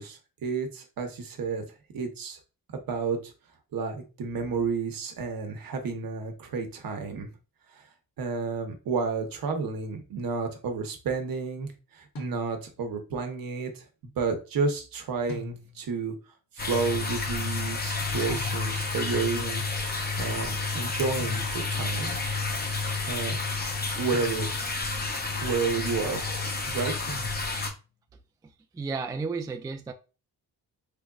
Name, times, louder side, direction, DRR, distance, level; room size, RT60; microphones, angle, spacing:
voice 1, 0.0-1.6 1.9-2.4 2.7-3.3 3.7-7.3 7.7-7.8 8.2-16.1 16.5-22.2 23.1-23.4 24.0-24.5 25.4-27.1, right 4 dB, 65° right, 1.0 m, -31 dB
sound 1, 12.2-12.9 15.3-16.0 18.3-19.1 21.2-21.9 24.1-24.9 27.1-27.9, left 1 dB, 50° left, 1.3 m, -43 dB
sound 2, 16.6-27.7, left 3 dB, 25° left, 0.7 m, -30 dB
voice 2, 28.4-29.9, right 4 dB, 10° right, 0.3 m, -33 dB
3.5 x 3.3 x 2.3 m
cardioid pair, 95°, 37 cm